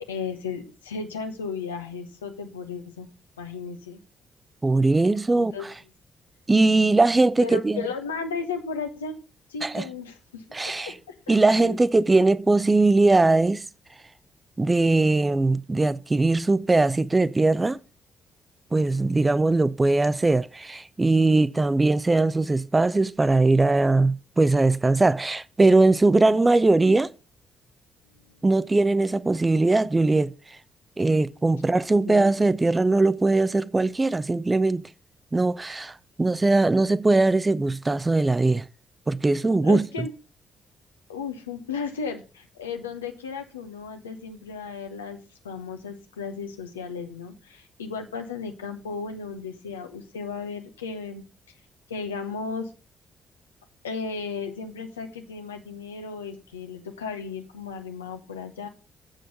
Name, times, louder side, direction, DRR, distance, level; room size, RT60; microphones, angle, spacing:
voice 1, 0.1-3.1 3.4-4.0 5.3-5.7 7.4-9.2 9.5-11.8 28.2-28.4 32.1-32.2 39.6-40.1 41.1-45.2 45.4-51.2 51.9-52.7 53.8-58.7, left 5 dB, 80° left, 0.9 m, -35 dB
voice 2, 4.6-5.5 6.5-7.9 9.6-9.8 10.5-10.9 11.3-13.6 14.6-17.8 18.7-27.1 28.4-30.3 31.0-34.8 35.3-38.6 39.1-40.1, right 2 dB, 20° right, 0.5 m, -20 dB
7.7 x 6.5 x 5.3 m
figure-of-eight pair, 40°, 0 cm